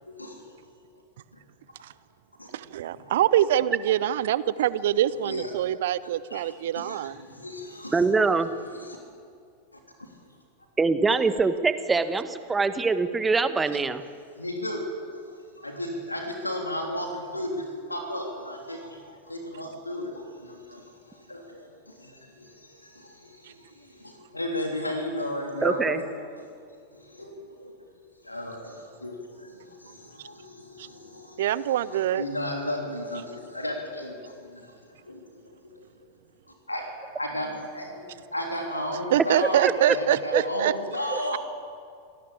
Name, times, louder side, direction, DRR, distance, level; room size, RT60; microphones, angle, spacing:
voice 1, 0.0-0.4 2.4-2.5 5.2-5.4 6.3-6.4 6.8-8.0 8.7-9.0 10.0-10.1 14.4-14.8 15.6-26.1 26.9-27.9 28.2-31.4 31.9-35.4 36.7-41.4, left 1 dB, 85° left, 2 dB, 3.3 m, -34 dB
voice 2, 2.5-7.2 23.4-23.5 30.8-30.9 31.4-32.2 39.1-40.7 41.3-41.4, right 12 dB, 55° right, 18 dB, 0.7 m, -25 dB
voice 3, 7.9-8.5 10.8-14.0 25.6-26.0 39.6-39.7 40.3-40.4, right 4 dB, 15° right, 11 dB, 1.4 m, -23 dB
26.5 x 18.0 x 8.6 m, 2.2 s
figure-of-eight pair, 90°, 0 cm